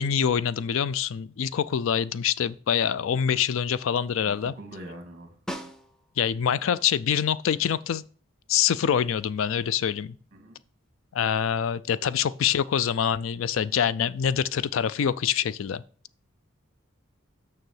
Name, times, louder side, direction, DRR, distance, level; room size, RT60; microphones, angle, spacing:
voice 1, 0.0-4.5 6.2-8.0 8.5-10.1 11.1-15.8, left 8 dB, 70° left, 0.4 m, -25 dB
voice 2, 4.2-5.4 10.3-10.6, right 1 dB, 40° right, 1.9 m, -43 dB
Snare drum, 5.5-6.4 10.8-10.9, equal, 5° left, 0.6 m, -38 dB
6.7 x 6.6 x 6.3 m
head